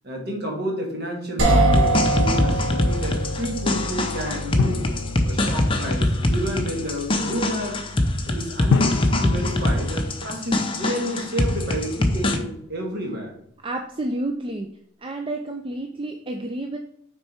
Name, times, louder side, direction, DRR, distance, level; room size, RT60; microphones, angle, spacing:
voice 1, 0.0-4.9 5.2-7.8 8.2-13.3, equal, 50° right, 0 dB, 1.7 m, -30 dB
sound 1, 1.4-11.2, right 1 dB, 70° right, 1.5 m, -27 dB
sound 2, 1.7-12.4, left 1 dB, 25° left, 0.6 m, -23 dB
Drum, 4.6-6.1 8.7-10.9, left 6 dB, 85° left, 0.3 m, -27 dB
voice 2, 13.6-14.7 15.0-16.8, right 2 dB, 25° right, 4 dB, 0.4 m, -30 dB
6.4 x 4.5 x 4.3 m, 0.71 s
head